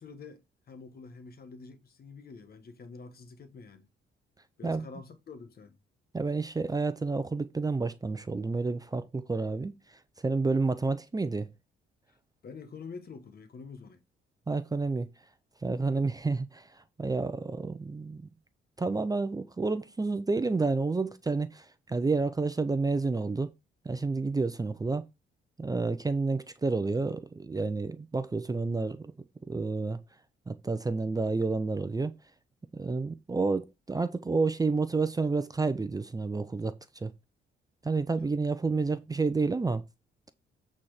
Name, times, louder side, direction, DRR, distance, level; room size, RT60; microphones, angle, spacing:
voice 1, 0.0-3.9 4.6-5.8 12.4-14.0 15.9-16.0 38.2-38.3, left 4 dB, 50° left, 1.6 m, -47 dB
voice 2, 6.1-11.5 14.5-15.1 15.6-18.3 18.8-23.5 23.8-25.0 25.6-29.1 29.4-30.0 30.5-32.1 32.7-37.1 37.8-39.8, right 3 dB, 20° right, 0.7 m, -30 dB
8.5 x 4.4 x 5.0 m
cardioid pair, 90°, 20 cm